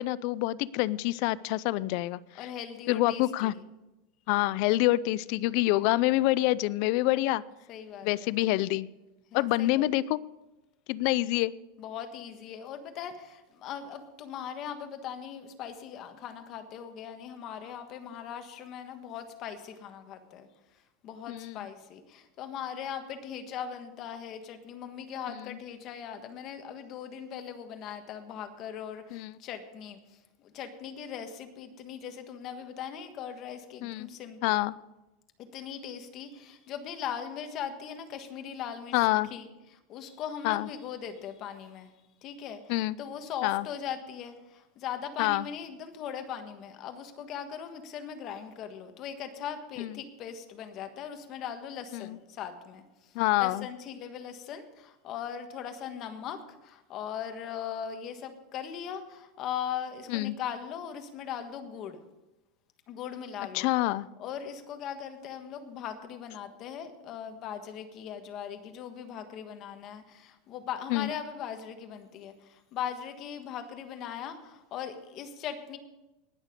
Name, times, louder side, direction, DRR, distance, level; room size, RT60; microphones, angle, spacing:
voice 1, 0.0-2.2 2.9-3.5 4.3-7.4 8.0-8.9 9.3-10.2 10.9-11.5 21.3-21.7 25.3-25.4 29.1-29.3 33.8-34.1 34.4-34.7 38.9-39.3 40.4-40.7 42.7-43.0 43.4-43.7 45.2-45.5 49.8-49.9 51.9-52.2 53.1-53.7 60.1-60.4 63.5-64.1 70.9-71.1, left 17 dB, 55° left, 20 dB, 0.4 m, -27 dB
voice 2, 2.4-3.6 7.7-8.3 9.3-9.9 11.8-20.5 21.0-34.6 35.4-41.9 42.2-62.0 62.9-63.7 64.2-75.8, left 8 dB, 40° left, 7 dB, 1.4 m, -39 dB
19.0 x 6.6 x 5.1 m, 1.0 s
supercardioid pair, 150°, 0 cm